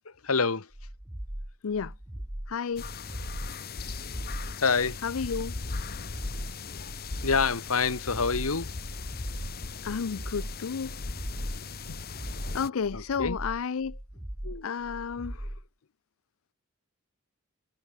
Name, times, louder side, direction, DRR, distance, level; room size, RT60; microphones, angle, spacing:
voice 1, 0.0-0.7 4.6-5.0 7.2-8.7 12.9-13.4 14.4-14.7, left 5 dB, 85° left, 1.5 m, -27 dB
sound 1, 0.7-15.7, right 1 dB, 10° right, 0.8 m, -39 dB
voice 2, 1.6-1.9 2.5-2.9 5.0-5.5 9.8-11.0 11.9-12.0 12.5-14.0 14.6-15.5, left 6 dB, 70° left, 0.5 m, -32 dB
sound 2, 2.8-12.7, left 4 dB, 45° left, 1.1 m, -38 dB
head